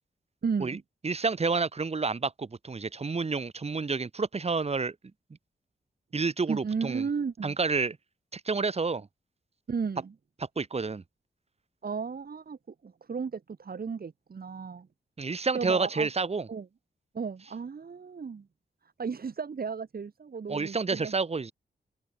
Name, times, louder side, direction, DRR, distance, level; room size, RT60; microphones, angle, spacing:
voice 1, 0.4-0.8 6.5-7.6 9.7-10.1 11.8-14.9 15.5-16.1 16.5-16.7 17.1-18.5 19.0-21.1, right 5 dB, 55° right, 6.6 m, -34 dB
voice 2, 1.0-4.9 6.1-7.0 7.4-8.0 8.3-9.1 10.6-11.0 15.2-16.5 20.5-21.5, right 4 dB, 35° right, 2.1 m, -29 dB
wide cardioid pair, 145°, 19 cm